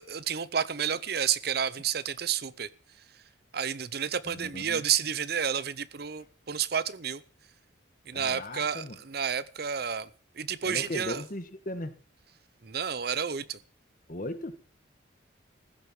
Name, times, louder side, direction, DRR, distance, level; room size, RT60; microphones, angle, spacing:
voice 1, 0.0-2.7 3.5-7.2 8.1-10.1 10.4-11.2 12.6-13.6, right 8 dB, 55° right, 0.7 m, -30 dB
voice 2, 4.3-4.8 8.1-9.0 10.6-11.9 14.1-14.6, left 1 dB, 45° left, 1.3 m, -37 dB
15.0 x 6.6 x 8.7 m
head